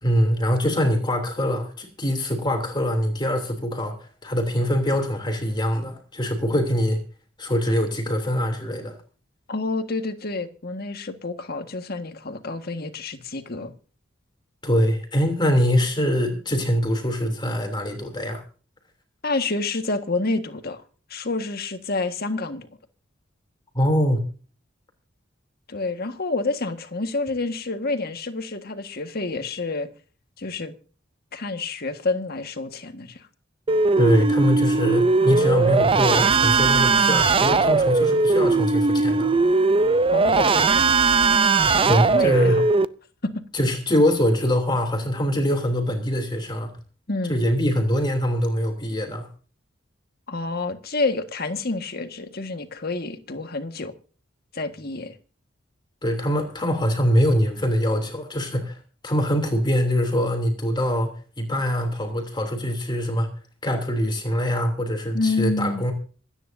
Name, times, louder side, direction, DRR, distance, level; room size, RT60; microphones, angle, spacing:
voice 1, 0.0-7.0 7.4-8.9 14.6-18.4 23.7-24.3 34.0-39.3 41.8-42.6 43.5-46.7 47.3-49.3 56.0-58.8 59.0-63.3 63.6-65.9, equal, 25° left, 3.1 m, -23 dB
voice 2, 9.5-13.7 19.2-20.8 21.1-22.7 25.7-29.9 30.4-30.8 31.3-33.3 35.2-36.0 40.1-41.0 41.7-42.6 43.2-43.3 47.1-47.4 50.3-53.9 54.5-55.2 65.1-65.8, left 3 dB, 55° left, 1.7 m, -28 dB
sound 1, 33.7-42.9, right 4 dB, 30° right, 0.6 m, -19 dB
26.5 x 9.9 x 2.7 m
head